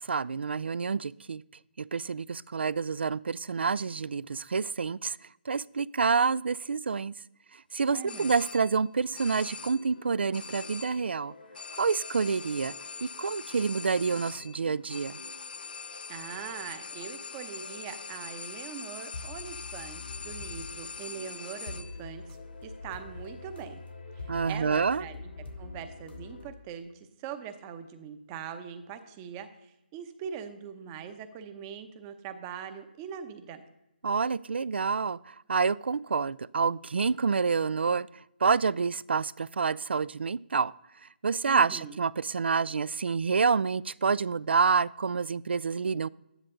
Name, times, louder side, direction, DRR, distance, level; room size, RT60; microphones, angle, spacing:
voice 1, 0.0-1.4 1.8-5.2 5.5-7.1 7.7-11.3 11.8-12.7 13.0-15.2 24.3-25.0 34.0-38.1 38.4-40.7 41.2-46.1, right 5 dB, 80° right, 21 dB, 0.4 m, -28 dB
voice 2, 7.9-8.4 16.1-22.2 22.6-23.8 24.2-25.3 25.6-33.6 41.4-42.0, right 7 dB, 15° right, 9 dB, 0.7 m, -42 dB
sound 1, 8.1-8.9 9.2-10.0 10.3-11.2 11.5-22.1, left 5 dB, 55° left, 0.6 m, -43 dB
sound 2, 9.0-26.5, left 3 dB, 85° left, 2.7 m, -47 dB
12.0 x 10.0 x 3.8 m, 0.92 s
hypercardioid pair, 165°, 6 cm